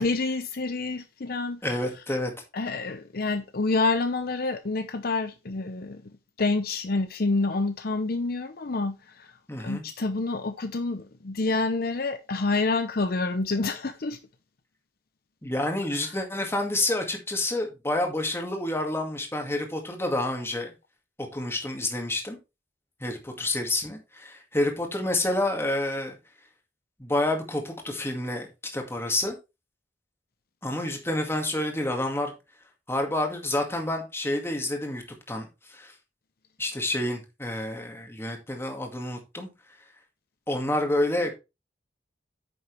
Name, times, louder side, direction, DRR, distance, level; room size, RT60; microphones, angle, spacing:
voice 1, 0.0-1.6 2.5-6.1 6.4-9.3 9.6-14.2 15.9-16.1, left 3 dB, 55° left, 0.7 m, -28 dB
voice 2, 1.6-2.3 9.5-9.8 15.4-20.7 21.2-22.4 23.0-26.2 27.0-29.4 30.6-32.3 32.9-35.9 36.6-39.5 40.5-41.4, left 1 dB, 15° left, 2.1 m, -29 dB
9.4 x 6.5 x 3.3 m
head